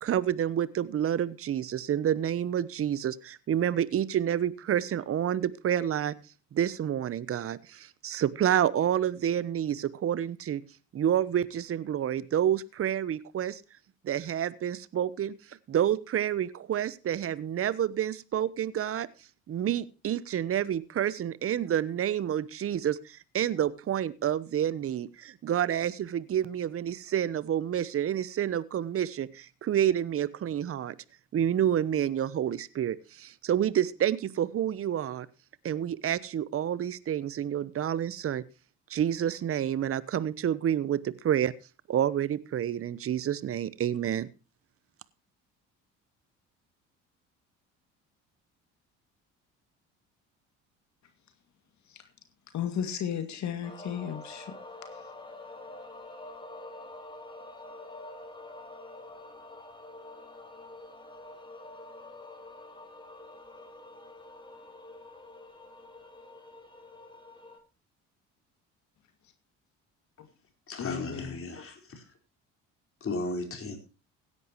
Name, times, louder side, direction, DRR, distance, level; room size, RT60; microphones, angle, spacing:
voice 1, 0.0-6.1 6.5-10.6 10.9-13.6 14.0-19.1 19.5-30.9 31.3-35.3 35.6-38.4 38.9-41.5 41.9-44.3, right 10 dB, 45° right, 0.9 m, -29 dB
voice 2, 52.5-54.5 54.9-55.0 70.2-70.3 70.8-71.4, left 8 dB, 60° left, 2.3 m, -34 dB
sound 1, 53.6-67.6, left 2 dB, 15° left, 3.2 m, -47 dB
voice 3, 70.7-72.0 73.0-73.8, left 2 dB, 40° left, 4.7 m, -35 dB
16.5 x 11.0 x 3.0 m
supercardioid pair, 75°, 33 cm